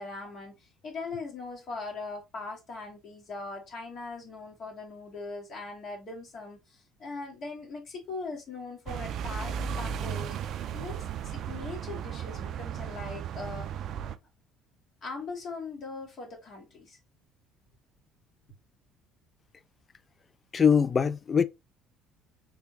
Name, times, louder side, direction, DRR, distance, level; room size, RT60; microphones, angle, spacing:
voice 1, 0.0-13.7 15.0-17.0, left 3 dB, 50° left, 1.6 m, -40 dB
sound 1, 8.9-14.2, right 8 dB, 55° right, 0.4 m, -35 dB
voice 2, 20.5-21.4, left 6 dB, 35° left, 0.4 m, -22 dB
3.5 x 3.5 x 2.8 m
hypercardioid pair, 55°, 0 cm